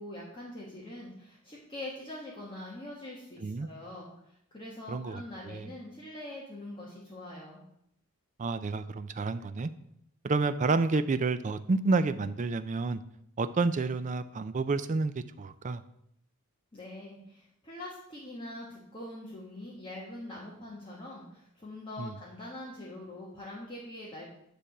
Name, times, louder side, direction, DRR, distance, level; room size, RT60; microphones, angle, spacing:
voice 1, 0.0-7.6 16.7-24.2, left 1 dB, 20° left, -5 dB, 1.4 m, -43 dB
voice 2, 4.9-5.7 8.4-9.7 10.2-13.0 13.4-15.1 15.4-15.8 22.0-22.1, right 3 dB, 35° right, 12 dB, 0.4 m, -29 dB
9.9 x 3.4 x 6.6 m, 0.76 s
head